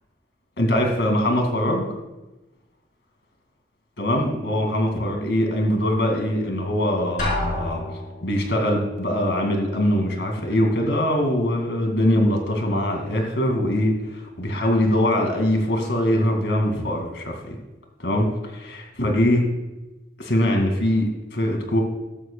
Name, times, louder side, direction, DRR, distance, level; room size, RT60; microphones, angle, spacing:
voice 1, 0.6-1.9 4.0-7.8 8.2-17.6 18.0-18.3 18.5-19.5 20.2-21.8, left 1 dB, 90° left, 2 dB, 2.4 m, -22 dB
Drum, 7.2-8.4, left 1 dB, 45° left, 3.9 m, -27 dB
14.0 x 12.5 x 2.4 m, 1.0 s
head